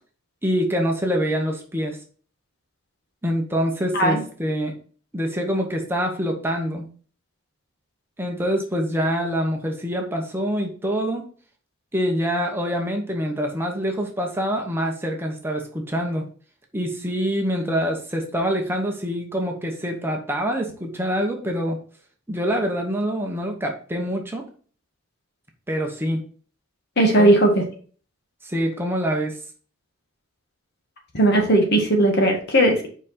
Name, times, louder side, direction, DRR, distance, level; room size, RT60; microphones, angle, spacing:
voice 1, 0.4-2.0 3.2-4.7 5.1-6.9 8.2-11.2 11.9-16.2 16.7-21.8 22.3-24.4 25.7-26.2 27.2-27.4 28.4-29.4, equal, 10° right, 2 dB, 1.0 m, -25 dB
voice 2, 27.0-27.6 31.1-32.9, right 1 dB, 55° left, 2 dB, 1.6 m, -17 dB
5.0 x 5.0 x 4.2 m, 0.42 s
head